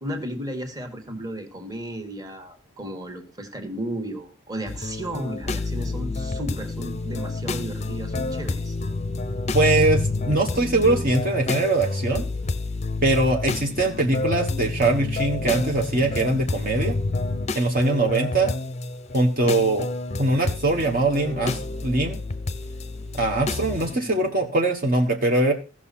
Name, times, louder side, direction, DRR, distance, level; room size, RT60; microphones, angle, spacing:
voice 1, 0.0-8.8 23.8-24.3, right 1 dB, 20° right, 5 dB, 1.6 m, -34 dB
sound 1, 4.7-24.0, left 3 dB, 30° left, 0.6 m, -29 dB
voice 2, 9.5-12.2 13.0-17.0 17.5-18.5 19.1-19.9 20.2-22.2 23.1-25.5, right 2 dB, 45° right, 1 dB, 1.1 m, -22 dB
16.0 x 6.1 x 4.2 m, 0.35 s
head